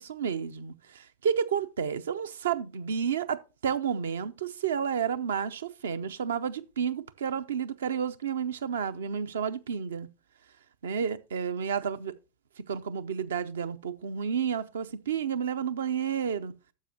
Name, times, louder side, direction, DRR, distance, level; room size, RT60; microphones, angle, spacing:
voice 1, 0.0-10.1 10.8-12.1 12.7-16.5, right 7 dB, 65° right, 0.6 m, -31 dB
12.0 x 7.4 x 2.8 m
figure-of-eight pair, 90°, 0 cm